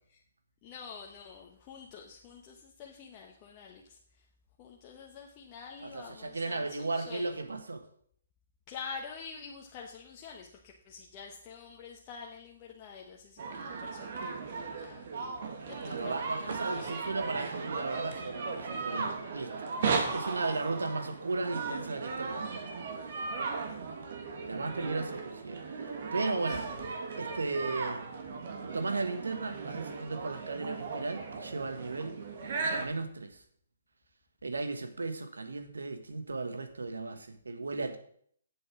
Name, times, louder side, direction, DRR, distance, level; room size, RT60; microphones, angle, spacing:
voice 1, 0.6-4.0 4.6-7.4 8.7-15.1 15.6-17.1 20.1-20.4 26.5-26.6, left 5 dB, 30° left, 0 dB, 1.1 m, -47 dB
voice 2, 5.8-7.8 15.8-19.7 20.1-22.5 24.4-26.7 27.2-28.1 28.7-32.2 32.8-33.4 34.4-38.0, right 3 dB, 90° right, 8 dB, 1.4 m, -35 dB
sound 1, 13.4-32.9, right 4 dB, 55° right, 1.7 m, -37 dB
7.7 x 6.9 x 6.1 m, 0.62 s
hypercardioid pair, 145°, 0 cm